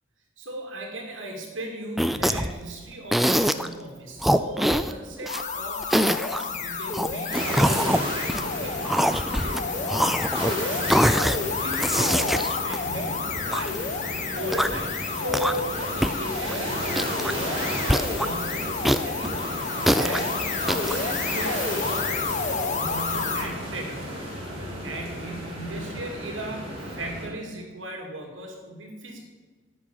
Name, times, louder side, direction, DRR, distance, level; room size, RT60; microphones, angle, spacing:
voice 1, 0.4-10.3 10.5-17.0 17.7-24.2 24.8-26.7 26.9-29.2, right 1 dB, 80° right, 2 dB, 2.6 m, -37 dB
sound 1, 2.0-2.6 3.1-3.7 4.2-5.4 5.8-6.4 6.9-8.5 8.8-9.6 9.9-10.6 10.9-11.4 11.7-13.7 14.4-14.9 15.3-15.8 16.0-16.1 16.4-16.6 16.9-17.4 17.9-18.3 18.8-20.2 20.7-21.0, equal, ahead, 0.3 m, -24 dB
sound 2, 5.3-23.5, left 5 dB, 40° left, 0.9 m, -30 dB
sound 3, 7.3-27.3, equal, 30° right, 4.0 m, -33 dB
11.0 x 6.2 x 8.7 m, 1.3 s
head